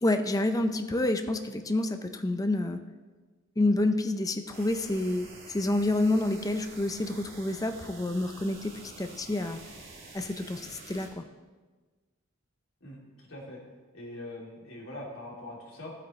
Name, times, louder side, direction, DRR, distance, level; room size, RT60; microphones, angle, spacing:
voice 1, 0.0-2.8 3.6-8.7 9.0-9.6 10.1-11.2, left 2 dB, 15° left, 7 dB, 0.5 m, -28 dB
sound 1, 4.5-11.1, right 3 dB, 45° right, 2.5 m, -48 dB
voice 2, 12.8-13.6 13.9-15.9, left 1 dB, 75° left, -3 dB, 2.8 m, -42 dB
15.0 x 8.3 x 3.2 m, 1.3 s
head